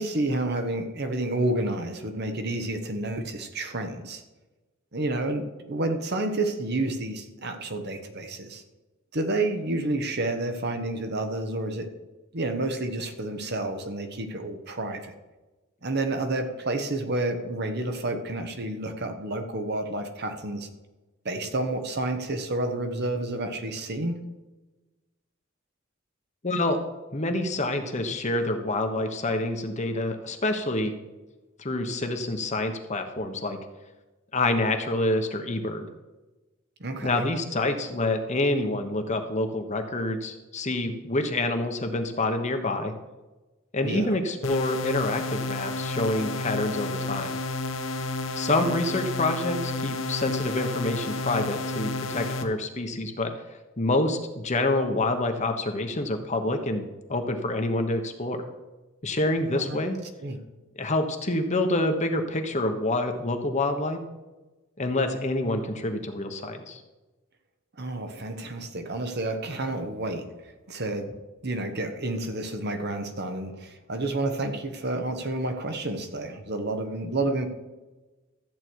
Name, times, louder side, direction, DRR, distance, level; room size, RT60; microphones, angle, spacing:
voice 1, 0.0-4.2 4.9-8.6 9.1-11.9 12.3-15.1 15.8-20.7 21.2-24.2 36.8-37.3 43.8-44.1 59.5-59.8 60.2-60.4 67.8-70.3 70.7-71.1 71.4-77.5, right 2 dB, 55° right, 6 dB, 1.3 m, -30 dB
voice 2, 26.4-26.8 27.1-30.9 31.6-33.6 34.3-35.9 37.0-42.9 43.7-47.4 48.4-53.3 53.8-56.8 57.1-58.4 59.0-60.0 60.8-64.0 64.8-66.8, left 2 dB, 35° left, 6 dB, 1.2 m, -27 dB
sound 1, 44.4-52.4, left 2 dB, 90° left, 1.4 m, -31 dB
13.5 x 8.5 x 4.7 m, 1.1 s
head